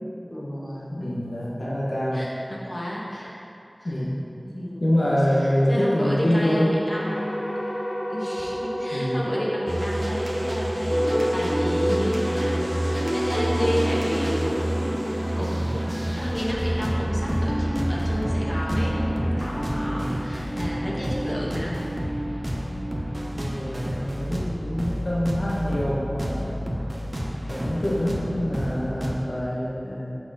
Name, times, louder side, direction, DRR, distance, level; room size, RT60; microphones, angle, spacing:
voice 1, 0.3-1.1 2.1-3.4 3.8-3.9 4.4-5.0 5.4-7.6 8.1-14.9 15.2-15.8 16.1-21.8, equal, 40° left, -5 dB, 1.5 m, -32 dB
voice 2, 0.9-2.3 3.8-4.2 4.8-6.7 8.9-9.2 23.3-26.7 27.5-30.2, equal, 80° left, -7 dB, 1.1 m, -25 dB
sound 1, 6.9-16.2, equal, 60° left, 0.9 m, -32 dB
sound 2, 9.7-29.2, right 1 dB, 35° right, 0.9 m, -29 dB
sound 3, 10.9-24.3, equal, 5° left, 0.6 m, -30 dB
6.0 x 5.8 x 4.2 m, 2.8 s
wide cardioid pair, 50°, 0 cm